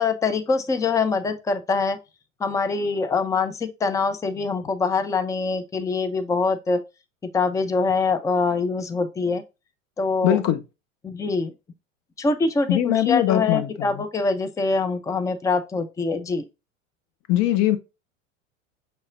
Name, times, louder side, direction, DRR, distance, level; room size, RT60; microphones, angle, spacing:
voice 1, 0.0-2.0 2.4-6.8 7.2-9.4 10.0-10.4 11.0-11.5 12.2-16.5, left 4 dB, 10° left, 0.5 m, -24 dB
voice 2, 10.2-10.6 12.7-14.0 17.3-17.8, left 12 dB, 45° left, 0.8 m, -21 dB
5.4 x 3.3 x 2.4 m
hypercardioid pair, 80°, 40 cm